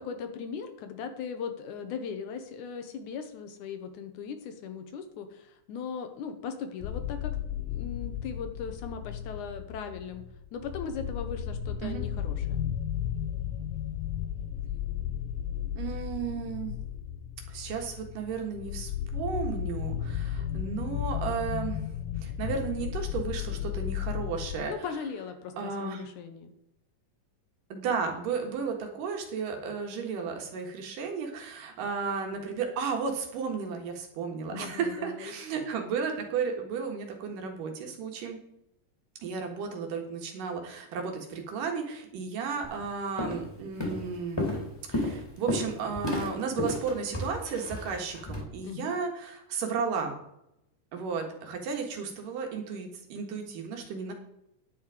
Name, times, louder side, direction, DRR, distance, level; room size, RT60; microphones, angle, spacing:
voice 1, 0.0-7.3 7.7-10.3 10.5-12.7 24.7-26.5 34.5-35.3 48.6-49.0, left 6 dB, 75° left, 7 dB, 2.4 m, -38 dB
sound 1, 6.8-24.6, left 10 dB, 90° left, 2.3 m, -34 dB
voice 2, 15.8-16.7 17.5-21.8 22.2-24.7 25.6-26.0 27.7-38.4 39.2-44.4 44.9-50.1 50.9-54.1, right 5 dB, 85° right, 3 dB, 3.3 m, -33 dB
Walk footsteps, 42.6-42.8 43.2-43.5 43.8-48.4, left 1 dB, 10° left, 2.0 m, -32 dB
10.5 x 7.8 x 4.9 m, 0.81 s
omnidirectional pair, 3.7 m